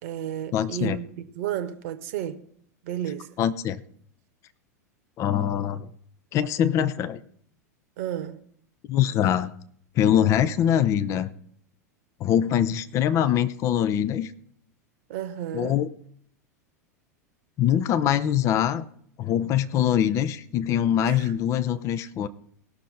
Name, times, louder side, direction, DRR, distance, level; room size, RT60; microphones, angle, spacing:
voice 1, 0.0-1.1 1.3-2.4 2.8-3.3 8.0-8.4 15.1-15.8 21.1-21.3, right 11 dB, 50° right, 1.2 m, -32 dB
voice 2, 0.5-1.0 3.4-3.8 5.2-5.9 6.3-7.2 8.9-9.5 10.0-11.3 12.2-14.3 15.5-15.9 17.6-18.9 19.2-22.3, left 10 dB, 35° left, 0.7 m, -23 dB
19.0 x 6.4 x 4.2 m
figure-of-eight pair, 85°, 9 cm